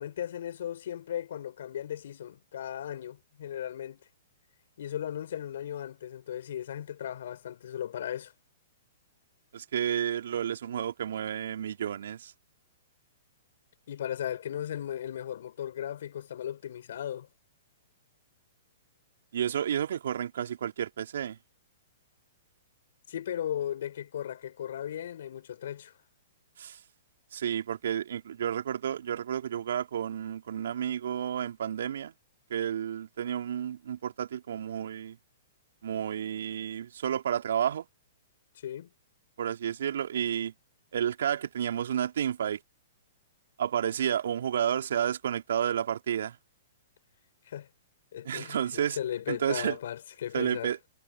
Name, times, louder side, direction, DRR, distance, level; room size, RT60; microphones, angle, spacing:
voice 1, 0.0-4.0 4.8-8.3 13.9-17.3 23.1-25.9 38.6-38.9 47.5-47.7 48.1-50.7, left 10 dB, 65° left, 4.2 m, -36 dB
voice 2, 9.5-12.3 19.3-21.4 26.6-26.8 27.3-32.1 32.5-35.2 35.8-37.9 39.4-40.5 40.9-42.6 43.6-46.4 48.3-49.0 49.3-49.8 50.3-50.8, right 9 dB, 65° right, 3.4 m, -31 dB
hypercardioid pair, 115°, 0 cm